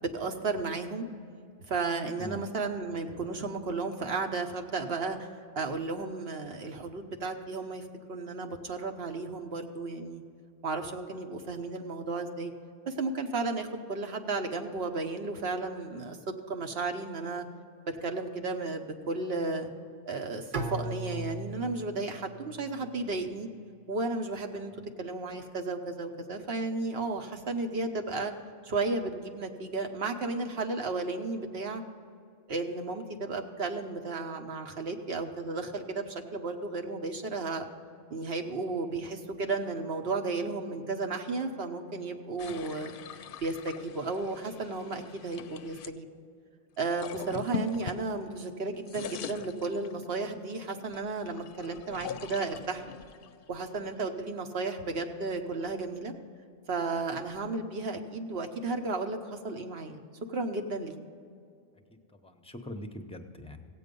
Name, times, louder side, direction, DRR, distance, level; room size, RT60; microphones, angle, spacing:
voice 1, 0.0-1.1 1.7-5.3 5.5-10.2 10.6-12.5 12.9-16.2 16.5-17.4 17.9-19.7 20.1-23.5 23.9-24.7 25.0-28.3 28.6-31.8 32.5-37.6 38.1-42.9 43.4-46.1 46.8-52.8 53.5-56.1 56.7-60.0 60.3-60.9, right 3 dB, 75° right, 5 dB, 1.2 m, -33 dB
Bowed string instrument, 20.5-23.6, right 2 dB, 55° right, 1.0 m, -39 dB
sound 1, 42.4-45.9 46.8-48.5 48.7-50.2 50.8-54.2, left 7 dB, 65° left, 0.7 m, -42 dB
voice 2, 61.9-63.7, equal, 5° left, 6 dB, 0.7 m, -43 dB
16.0 x 8.6 x 5.3 m, 2.4 s
omnidirectional pair, 1.0 m